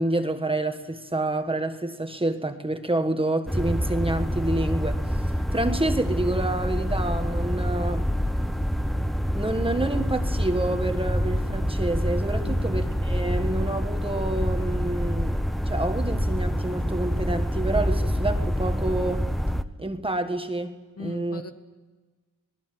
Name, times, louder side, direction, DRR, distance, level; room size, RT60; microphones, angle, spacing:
voice 1, 0.0-5.0 5.5-8.1 9.3-19.3 19.8-21.4, right 2 dB, 15° right, 7 dB, 1.6 m, -28 dB
sound 1, 3.5-19.6, equal, ahead, 1.0 m, -26 dB
voice 2, 12.4-12.8 21.0-21.5, left 3 dB, 45° left, 7 dB, 1.9 m, -39 dB
26.5 x 19.5 x 7.7 m, 1.3 s
wide cardioid pair, 105°, 32 cm